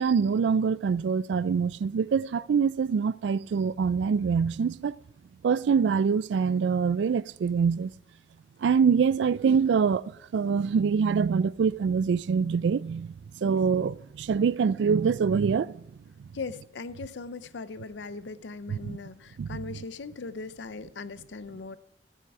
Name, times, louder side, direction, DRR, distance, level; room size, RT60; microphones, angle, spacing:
voice 1, 0.0-5.0 5.4-7.9 8.6-10.0 10.3-13.1 13.4-15.8 18.7-19.0 19.4-19.6, right 6 dB, 80° right, 0.3 m, -25 dB
voice 2, 16.3-21.8, left 4 dB, 85° left, 0.6 m, -39 dB
14.5 x 8.6 x 4.8 m
head